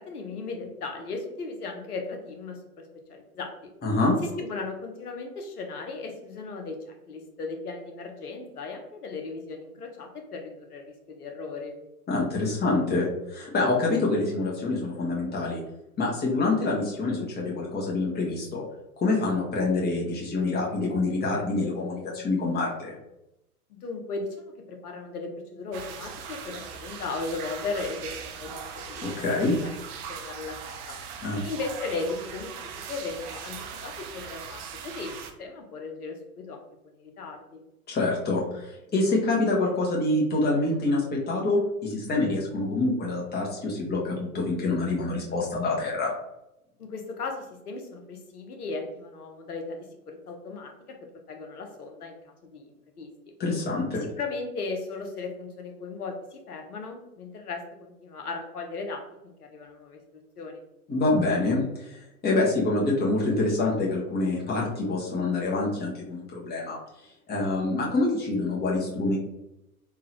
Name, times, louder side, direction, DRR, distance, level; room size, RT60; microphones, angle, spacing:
voice 1, 0.0-3.7 4.2-11.8 23.7-29.2 29.6-29.8 30.1-31.0 31.4-35.1 35.4-37.6 46.8-51.0 51.3-53.1 53.9-60.0 60.4-60.6, left 3 dB, 85° left, 3 dB, 0.9 m, -37 dB
voice 2, 3.8-4.1 12.1-15.6 16.0-18.6 19.0-22.9 29.0-29.6 31.2-31.4 37.9-46.1 53.4-54.0 60.9-66.8 67.3-69.2, left 2 dB, 20° left, -3 dB, 1.3 m, -26 dB
sound 1, 25.7-35.3, right 6 dB, 45° right, 0.6 m, -40 dB
3.8 x 2.7 x 2.9 m, 0.88 s
hypercardioid pair, 100°, 45 cm